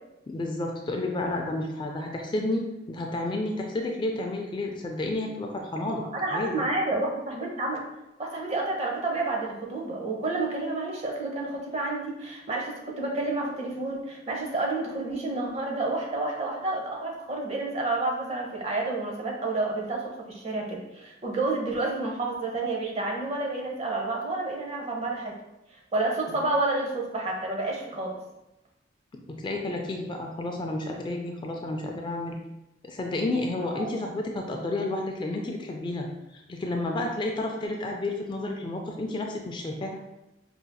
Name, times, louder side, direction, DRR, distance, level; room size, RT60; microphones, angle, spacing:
voice 1, 0.3-6.6 26.3-26.4 29.1-32.4 32.8-40.0, left 2 dB, 25° left, 2 dB, 0.3 m, -31 dB
voice 2, 5.8-7.8 8.2-20.0 20.3-25.3 25.9-28.1 33.6-33.9, right 2 dB, 35° right, -1 dB, 0.8 m, -30 dB
4.8 x 2.7 x 2.2 m, 0.94 s
head